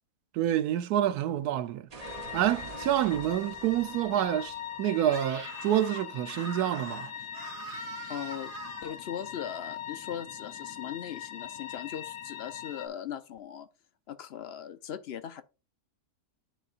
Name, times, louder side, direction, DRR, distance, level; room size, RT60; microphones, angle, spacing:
voice 1, 0.3-1.9 2.3-7.1, right 11 dB, 85° right, 1.1 m, -28 dB
sound 1, 1.9-6.7, right 4 dB, 35° right, 0.6 m, -47 dB
sound 2, 2.0-12.9, left 9 dB, 80° left, 1.2 m, -42 dB
Screaming, 5.0-9.0, right 4 dB, 55° right, 1.0 m, -43 dB
voice 2, 8.1-8.5 8.8-13.7 14.1-15.4, left 9 dB, 60° left, 0.7 m, -39 dB
11.5 x 4.0 x 2.4 m
omnidirectional pair, 1.6 m